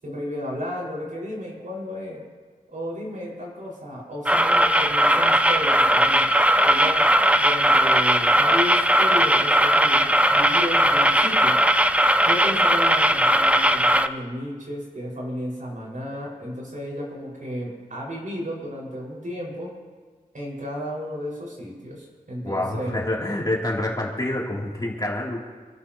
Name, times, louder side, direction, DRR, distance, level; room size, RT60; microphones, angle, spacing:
voice 1, 0.0-2.2 2.7-6.3 6.6-11.6 12.2-19.7 20.3-23.1, equal, 65° right, -4 dB, 5.9 m, -33 dB
sound 1, 4.3-14.1, right 1 dB, 10° right, 0.6 m, -18 dB
voice 2, 22.4-25.4, left 1 dB, 25° left, -4 dB, 3.3 m, -27 dB
27.5 x 13.5 x 3.1 m, 1.5 s
wide cardioid pair, 90°, 15 cm